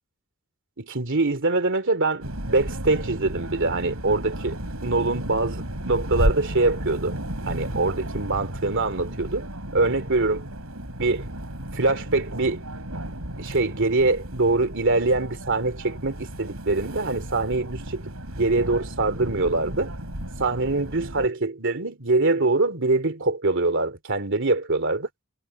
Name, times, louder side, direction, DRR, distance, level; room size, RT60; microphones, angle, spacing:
voice 1, 0.8-7.2 7.5-9.5 9.7-10.4 11.0-11.3 11.7-12.6 13.4-19.9 20.4-25.1, right 3 dB, 60° right, 2.9 m, -24 dB
sound 1, 2.2-21.3, right 1 dB, 85° right, 6.8 m, -33 dB
head